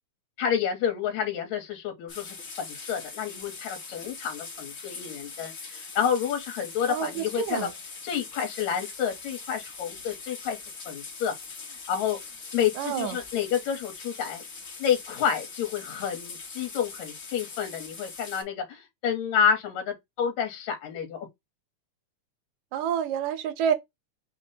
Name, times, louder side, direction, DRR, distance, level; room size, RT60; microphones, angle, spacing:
voice 1, 0.4-7.7 8.0-10.6 10.9-11.3 11.7-12.2 12.5-14.4 14.8-21.3, left 8 dB, 75° left, 2.3 m, -29 dB
sound 1, 2.1-18.4, left 4 dB, 60° left, 0.8 m, -42 dB
voice 2, 6.9-7.7 12.8-13.2 22.7-23.7, right 8 dB, 75° right, 2.1 m, -28 dB
6.0 x 2.1 x 4.0 m
omnidirectional pair, 3.5 m